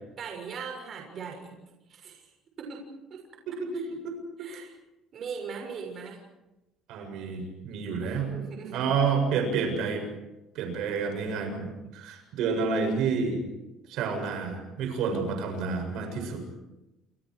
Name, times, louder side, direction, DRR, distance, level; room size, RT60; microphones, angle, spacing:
voice 1, 0.2-1.5 1.9-2.3 2.6-2.8 3.1-3.2 3.7-3.8 4.4-4.7 5.1-6.2 8.0-8.9, right 5 dB, 40° right, 1 dB, 6.5 m, -39 dB
voice 2, 3.5-4.5 6.9-8.3 8.7-10.1 10.5-13.4 13.9-16.4, right 5 dB, 70° right, 4 dB, 7.5 m, -29 dB
29.5 x 28.5 x 4.9 m, 0.99 s
cardioid pair, 145°, 0 cm